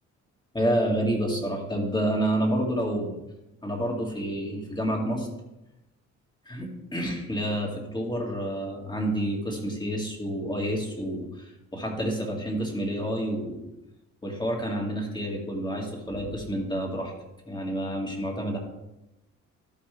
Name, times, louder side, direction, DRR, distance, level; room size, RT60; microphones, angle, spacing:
voice 1, 0.5-3.2 3.6-5.3 6.5-13.6 14.2-17.1 17.5-18.6, equal, 15° left, 0 dB, 2.1 m, -29 dB
12.5 x 5.4 x 3.4 m, 0.95 s
cardioid pair, 90°, 30 cm